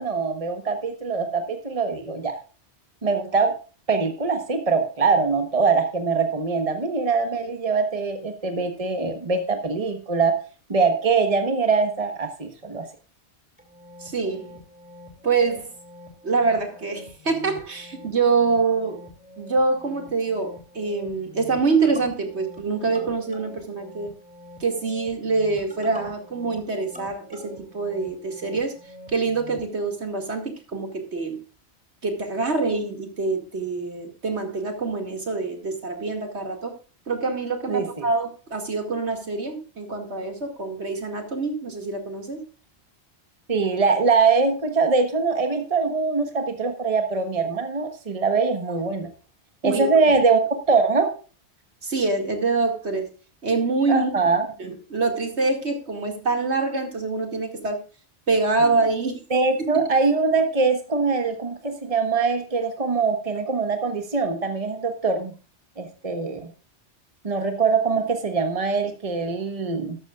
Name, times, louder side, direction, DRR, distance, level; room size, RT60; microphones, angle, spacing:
voice 1, 0.0-2.4 3.0-3.5 3.9-10.3 10.7-12.9 37.7-38.0 43.5-49.1 49.6-50.4 50.7-51.1 53.9-54.5 59.3-65.3 65.8-66.5 67.2-70.0, right 4 dB, 30° right, 6 dB, 1.4 m, -23 dB
sound 1, 13.6-29.7, left 1 dB, 5° right, 2.9 m, -45 dB
voice 2, 14.0-14.5 15.2-15.7 16.2-19.0 19.4-24.2 24.6-28.7 29.1-31.4 32.0-36.7 37.1-42.4 49.6-50.0 51.8-53.1 53.4-54.1 54.6-57.8 58.3-59.2, right 4 dB, 75° right, 4 dB, 2.6 m, -25 dB
13.5 x 11.5 x 2.5 m, 0.36 s
omnidirectional pair, 1.2 m